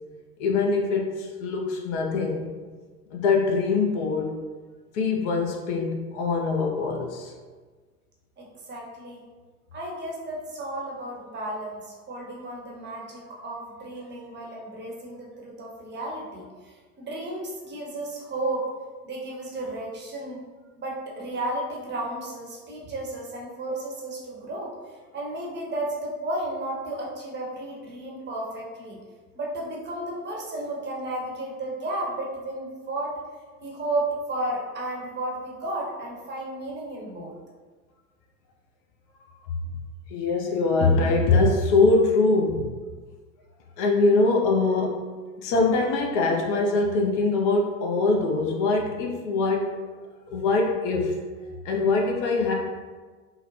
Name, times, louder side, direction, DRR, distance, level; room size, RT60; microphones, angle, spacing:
voice 1, 0.4-2.5 3.1-4.3 4.9-7.3 40.1-42.7 43.8-45.1 45.4-49.8 50.3-51.2 51.6-52.5, left 3 dB, 50° left, 0 dB, 0.6 m, -23 dB
voice 2, 8.4-9.2 9.7-18.7 19.0-20.4 20.8-24.7 25.1-29.0 29.3-33.1 33.6-37.3, right 1 dB, 25° right, -3 dB, 0.8 m, -33 dB
3.7 x 2.1 x 3.0 m, 1.4 s
figure-of-eight pair, 80°, 45 cm